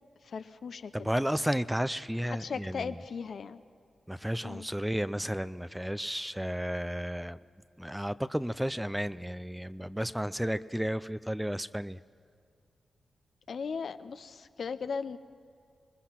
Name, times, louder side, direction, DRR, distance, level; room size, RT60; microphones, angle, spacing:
voice 1, 0.2-1.1 2.2-3.6 4.4-4.7 13.5-15.2, left 5 dB, 70° left, 11 dB, 0.8 m, -37 dB
voice 2, 0.9-3.0 4.1-7.4 7.8-12.0, equal, 5° right, 15 dB, 0.5 m, -33 dB
25.5 x 20.0 x 6.0 m, 2.3 s
cardioid pair, 55°, 0 cm